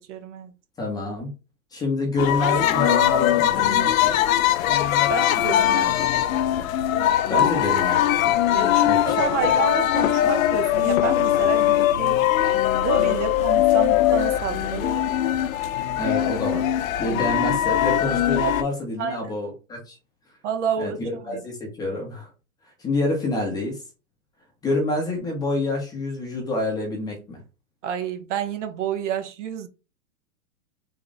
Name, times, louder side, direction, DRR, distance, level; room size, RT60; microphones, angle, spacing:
voice 1, 0.1-0.5 5.1-6.1 8.5-12.2 12.8-15.0 19.0-19.3 20.4-21.4 27.8-29.7, right 7 dB, 60° right, 0.7 m, -29 dB
voice 2, 0.8-1.3 1.7-4.1 7.3-8.3 8.9-9.2 9.4-9.5 16.0-16.7 17.0-20.0 20.8-22.3 22.8-23.8 24.6-27.4, left 2 dB, 10° left, 0.7 m, -27 dB
sound 1, 2.2-18.6, left 12 dB, 75° left, 0.6 m, -21 dB
3.6 x 2.4 x 3.8 m
supercardioid pair, 155°, 41 cm